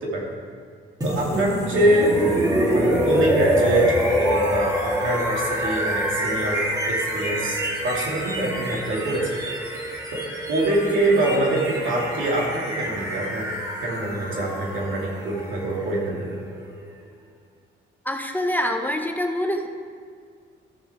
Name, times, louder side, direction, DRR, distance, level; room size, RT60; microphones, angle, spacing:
sound 1, 1.0-16.9, equal, 20° right, 2.3 m, -26 dB
voice 1, 1.0-2.2 2.7-9.3 10.1-10.2 10.5-13.5 13.8-16.3, right 2 dB, 75° right, -3 dB, 2.5 m, -24 dB
voice 2, 18.0-19.7, left 1 dB, 10° left, 3 dB, 0.7 m, -25 dB
13.5 x 6.0 x 4.9 m, 2.1 s
cardioid pair, 90°, 20 cm